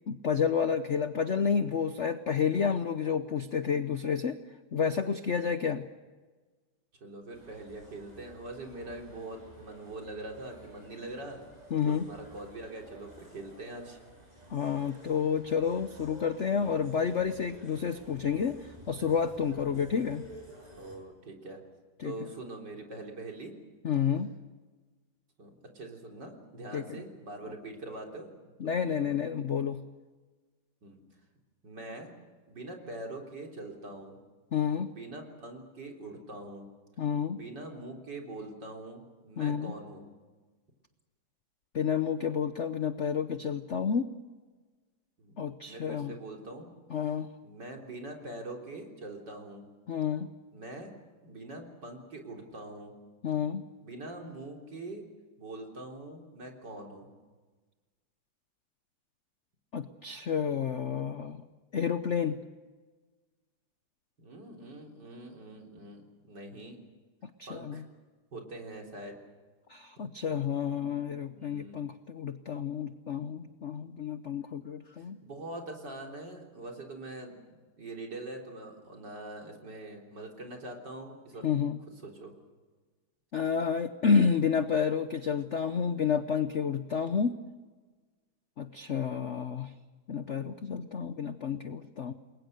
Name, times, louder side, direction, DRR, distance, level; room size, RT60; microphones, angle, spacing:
voice 1, 0.0-4.4 4.7-5.9 11.7-12.1 14.5-20.2 22.0-22.1 23.8-24.3 26.7-27.0 28.6-29.8 34.5-34.9 37.0-37.4 39.4-39.7 41.7-44.1 45.4-46.1 46.9-47.3 49.9-50.3 53.2-53.6 59.7-61.4 61.7-62.4 67.2-67.8 69.7-75.2 81.4-81.8 83.3-87.4 88.6-89.7 90.1-92.1, left 7 dB, 55° left, 10 dB, 0.8 m, -30 dB
voice 2, 7.0-11.4 11.9-14.0 19.5-19.9 20.8-21.6 22.0-23.5 25.4-28.5 29.0-29.2 30.8-31.0 31.6-32.1 32.5-34.2 34.9-36.7 37.3-40.1 45.2-45.4 45.7-46.7 47.4-49.7 50.5-50.9 51.2-52.9 53.5-55.1 55.4-57.1 64.2-66.8 67.5-67.9 68.3-69.2 71.1-71.8 75.2-81.5 82.0-82.3, right 2 dB, 55° right, 1 dB, 4.2 m, -43 dB
sound 1, 7.3-21.0, equal, 20° right, 7.0 m, -53 dB
29.0 x 21.5 x 6.6 m, 1.4 s
omnidirectional pair, 2.2 m